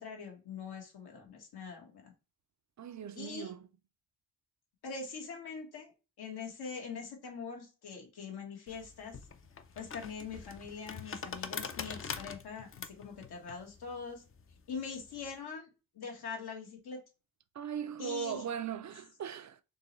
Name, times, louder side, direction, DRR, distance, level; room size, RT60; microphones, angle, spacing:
voice 1, 0.0-2.1 3.1-3.5 4.8-5.9 6.2-9.2 9.7-14.2 14.7-17.0 18.0-18.4, left 5 dB, 80° left, 1.6 m, -43 dB
voice 2, 2.8-3.7 17.5-19.6, right 8 dB, 50° right, 0.5 m, -39 dB
sound 1, 8.7-15.3, left 6 dB, 35° left, 0.5 m, -44 dB
4.4 x 3.0 x 3.1 m
wide cardioid pair, 110°, 38 cm